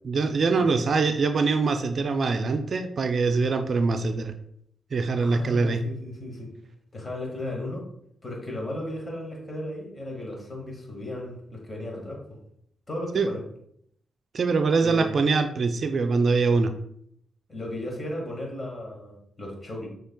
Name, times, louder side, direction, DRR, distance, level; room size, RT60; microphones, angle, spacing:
voice 1, 0.1-4.3 4.9-5.8 13.1-13.3 14.3-16.7, right 4 dB, 55° right, 8 dB, 0.4 m, -23 dB
voice 2, 5.2-6.5 6.9-7.9 8.2-12.2 12.9-13.4 14.8-15.1 17.5-19.9, left 1 dB, 35° left, 0 dB, 1.7 m, -35 dB
6.3 x 3.2 x 2.2 m, 0.70 s
supercardioid pair, 55°, 0 cm